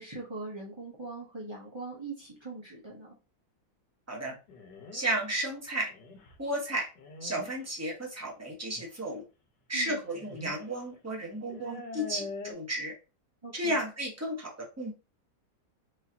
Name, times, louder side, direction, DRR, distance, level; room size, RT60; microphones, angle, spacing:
voice 1, 0.0-3.1 9.7-10.0 13.4-13.8, right 3 dB, 30° right, -5 dB, 0.4 m, -41 dB
sound 1, 4.5-5.2 5.9-6.3 7.0-7.5 8.8-8.9 10.0-10.6 10.9-11.0 11.5-12.5, left 3 dB, 65° left, 1.5 m, -43 dB
voice 2, 4.9-5.9 6.4-6.9 7.2-9.2 9.7-12.9 13.5-14.9, right 1 dB, 10° right, -2 dB, 0.8 m, -33 dB
4.9 x 2.8 x 2.8 m, 0.30 s
omnidirectional pair, 2.1 m